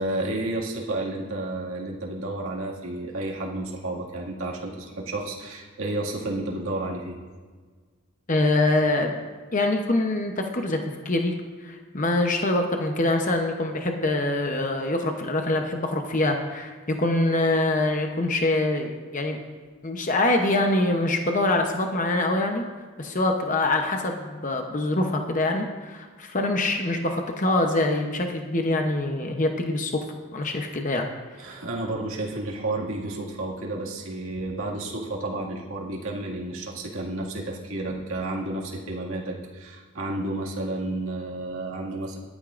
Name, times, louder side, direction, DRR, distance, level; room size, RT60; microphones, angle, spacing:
voice 1, 0.0-7.2 31.4-42.2, right 2 dB, 70° right, -2 dB, 2.1 m, -31 dB
voice 2, 8.3-9.2 9.5-10.8 11.0-11.3 11.6-19.4 19.8-22.6 23.0-30.0 30.3-31.1, left 2 dB, 35° left, 3 dB, 0.8 m, -24 dB
18.5 x 11.5 x 2.5 m, 1.5 s
head